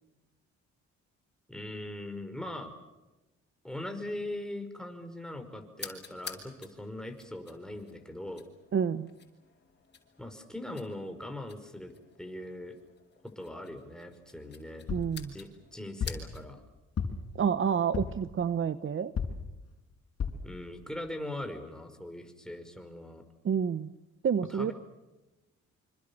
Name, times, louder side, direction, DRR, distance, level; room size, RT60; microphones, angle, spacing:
voice 1, 1.5-2.7 3.6-8.4 10.2-11.9 12.2-12.8 13.2-14.9 15.3-16.6 20.4-23.2 24.5-24.7, left 1 dB, ahead, 6 dB, 5.3 m, -40 dB
sound 1, 5.7-16.6, left 5 dB, 35° left, 6.4 m, -50 dB
voice 2, 8.7-9.1 14.9-15.3 17.4-19.1 23.4-23.9 24.2-24.7, right 7 dB, 40° right, 13 dB, 1.0 m, -29 dB
sound 2, 14.9-15.2 16.0-16.3 17.0-17.4 17.9-18.3 19.2-19.5 20.2-20.5 21.1-21.2 21.4-21.5, left 6 dB, 50° left, 5.2 m, -33 dB
27.0 x 25.5 x 7.2 m, 1.0 s
cardioid pair, 90°, 30 cm